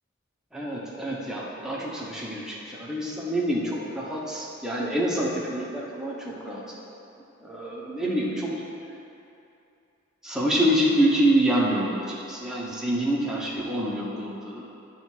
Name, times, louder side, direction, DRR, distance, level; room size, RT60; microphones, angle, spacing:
voice 1, 0.5-6.6 7.4-8.6 10.2-14.6, right 1 dB, 5° right, -5 dB, 1.0 m, -26 dB
9.3 x 3.3 x 6.1 m, 2.7 s
head